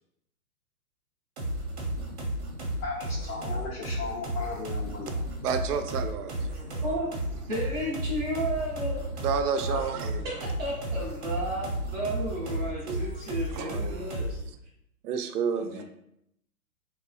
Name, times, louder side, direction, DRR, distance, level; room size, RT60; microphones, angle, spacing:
sound 1, 1.4-14.5, right 1 dB, 45° right, 0.8 m, -33 dB
voice 1, 2.8-5.1, left 4 dB, 65° left, -4 dB, 0.7 m, -36 dB
voice 2, 5.4-6.3 9.2-10.3 12.4-12.5 12.9-13.0 13.5-14.1 15.0-15.8, right 6 dB, 80° right, 7 dB, 0.5 m, -30 dB
voice 3, 7.5-9.0 9.6-9.9 10.2-14.4 15.6-15.8, right 1 dB, 15° right, -6 dB, 0.6 m, -33 dB
2.9 x 2.4 x 2.2 m, 0.78 s
hypercardioid pair, 145°, 45 cm